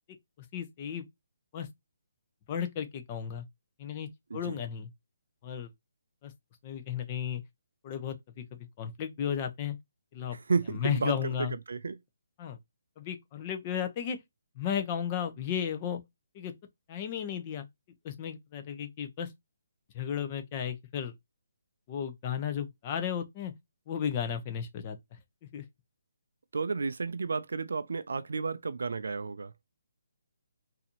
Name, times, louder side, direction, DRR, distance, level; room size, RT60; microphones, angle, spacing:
voice 1, 0.5-1.0 1.5-1.7 2.5-3.4 3.8-4.9 5.4-5.7 6.2-6.3 6.6-7.4 7.8-8.4 8.8-9.8 10.1-10.4 10.7-11.5 12.4-12.6 13.0-14.2 14.6-16.0 16.3-16.5 16.9-17.7 18.0-19.3 19.9-21.1 21.9-23.5 23.9-25.0 25.5-25.6, left 8 dB, 30° left, 0.8 m, -34 dB
voice 2, 4.3-4.6 10.3-12.0 26.5-29.5, right 4 dB, 75° right, 0.4 m, -32 dB
4.0 x 2.7 x 2.8 m
hypercardioid pair, 155°, 0 cm